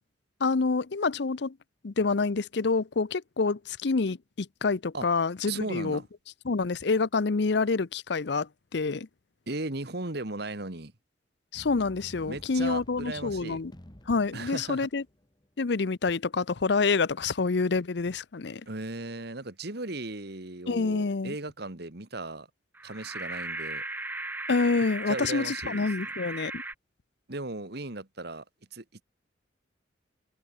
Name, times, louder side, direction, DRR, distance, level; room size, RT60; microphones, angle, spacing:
voice 1, 0.4-1.6 1.8-6.0 6.4-9.1 11.5-13.7 14.1-15.0 15.6-18.6 20.7-21.4 24.5-26.6, left 4 dB, 65° left, 0.6 m, -27 dB
voice 2, 5.5-6.1 9.5-10.9 12.3-13.6 14.3-14.9 18.7-22.5 22.8-23.8 25.1-25.9 27.3-28.4 28.7-29.0, right 2 dB, 60° right, 2.1 m, -36 dB
sound 1, 11.5-15.6, equal, 25° left, 1.8 m, -50 dB
sound 2, 22.7-26.7, right 2 dB, 10° right, 0.7 m, -37 dB
head